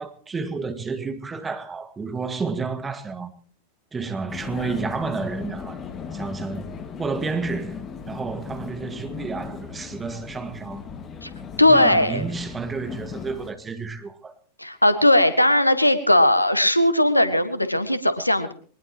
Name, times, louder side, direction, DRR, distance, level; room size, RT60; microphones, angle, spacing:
voice 1, 0.0-3.3 3.9-5.8 6.1-6.7 7.0-10.9 11.7-14.3, right 4 dB, 15° right, 1.9 m, -30 dB
Vehicle, 4.3-13.5, left 6 dB, 25° left, 2.0 m, -37 dB
voice 2, 11.6-12.2 14.6-18.5, left 1 dB, 85° left, 1.6 m, -18 dB
22.5 x 20.0 x 3.0 m
figure-of-eight pair, 90°, 0 cm